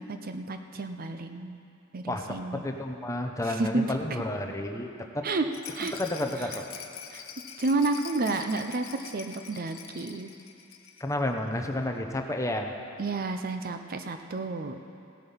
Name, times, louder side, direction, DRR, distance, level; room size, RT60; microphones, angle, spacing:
voice 1, 0.0-1.6 1.9-2.6 3.4-3.9 5.2-5.5 5.7-5.9 7.1-7.2 7.6-10.3 13.0-14.9, right 3 dB, 45° right, 7 dB, 0.6 m, -31 dB
voice 2, 2.1-5.3 5.8-6.7 11.0-12.7, left 1 dB, 15° left, 3 dB, 0.8 m, -31 dB
Rattle, 5.5-11.2 11.5-11.6 11.8-11.9, left 8 dB, 80° left, 0.9 m, -44 dB
16.5 x 8.9 x 5.7 m, 2.6 s
head